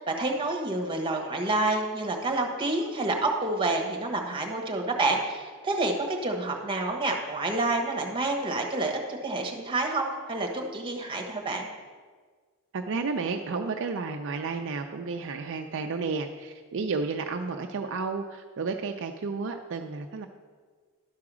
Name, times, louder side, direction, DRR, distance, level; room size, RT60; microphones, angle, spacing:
voice 1, 0.1-11.7, right 2 dB, 25° right, 2 dB, 1.2 m, -28 dB
voice 2, 12.7-20.3, right 4 dB, 55° right, 4 dB, 0.5 m, -32 dB
11.5 x 4.8 x 6.1 m, 1.5 s
head